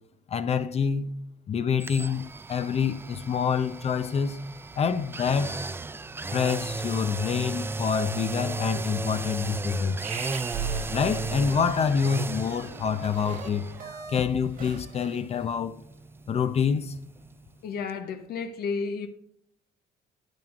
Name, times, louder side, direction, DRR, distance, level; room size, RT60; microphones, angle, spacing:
voice 1, 0.3-1.2 1.5-2.2 2.5-4.5 4.8-5.7 6.3-10.1 10.9-13.7 14.1-15.8 16.3-16.9, left 6 dB, 40° left, 0.6 m, -27 dB
sound 1, 1.8-17.6 17.9-18.0, right 3 dB, 15° right, 0.3 m, -36 dB
sound 2, 10.0-15.5, right 5 dB, 55° right, 1.3 m, -38 dB
voice 2, 17.6-19.1, left 5 dB, 70° left, 0.9 m, -32 dB
9.1 x 9.0 x 2.5 m
cardioid pair, 110°, 17 cm